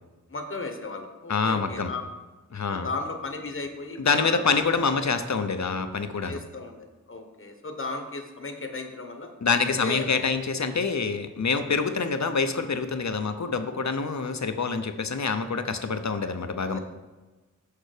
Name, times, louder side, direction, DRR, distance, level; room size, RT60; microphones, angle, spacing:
voice 1, 0.3-2.0 2.7-4.4 4.7-4.9 6.3-9.3 9.7-10.2 16.7-16.8, left 3 dB, 45° left, 4 dB, 1.0 m, -35 dB
voice 2, 1.3-1.9 2.5-2.9 4.0-6.4 9.4-16.8, left 4 dB, 65° left, 8 dB, 0.7 m, -26 dB
6.8 x 6.7 x 4.9 m, 1.2 s
wide cardioid pair, 65°, 31 cm